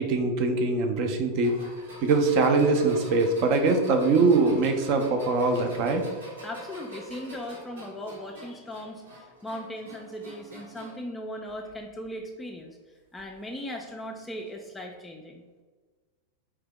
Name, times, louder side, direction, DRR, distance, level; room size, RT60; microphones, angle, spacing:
voice 1, 0.0-1.5 2.0-6.0, right 3 dB, 45° right, 5 dB, 0.6 m, -23 dB
sound 1, 1.4-11.1 11.5-12.1 13.2-13.3 14.4-14.5, right 1 dB, 70° right, 1.3 m, -45 dB
voice 2, 6.4-12.8 13.1-15.4, left 1 dB, 10° left, 1 dB, 0.4 m, -38 dB
4.5 x 2.8 x 3.5 m, 1.4 s
figure-of-eight pair, 90°, 0 cm